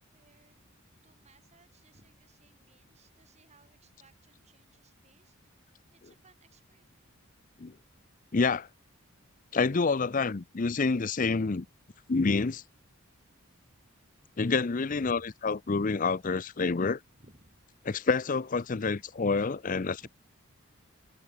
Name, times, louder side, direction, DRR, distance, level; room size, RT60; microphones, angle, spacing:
voice 1, 0.1-0.7 1.0-5.6 5.9-7.1 12.0-12.2 13.7-13.8 14.9-15.3 17.1-17.5 20.0-20.1, right 1 dB, 30° right, 7.9 m, -61 dB
voice 2, 8.3-8.7 9.5-11.7 12.1-12.6 14.4-17.0 17.9-20.1, left 4 dB, 40° left, 0.5 m, -28 dB
head